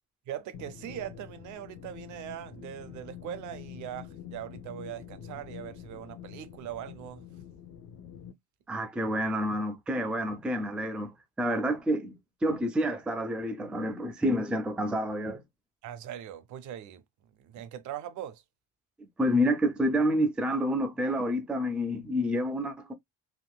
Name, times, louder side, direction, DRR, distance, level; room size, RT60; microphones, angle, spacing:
voice 1, 0.3-7.3 15.8-17.0 17.4-18.4, right 10 dB, 65° right, 0.6 m, -41 dB
sound 1, 0.5-8.3, left 9 dB, 50° left, 0.6 m, -46 dB
voice 2, 8.7-12.1 12.4-15.4 19.2-22.9, equal, 5° right, 0.3 m, -28 dB
3.6 x 2.4 x 2.2 m
cardioid pair, 160°, 31 cm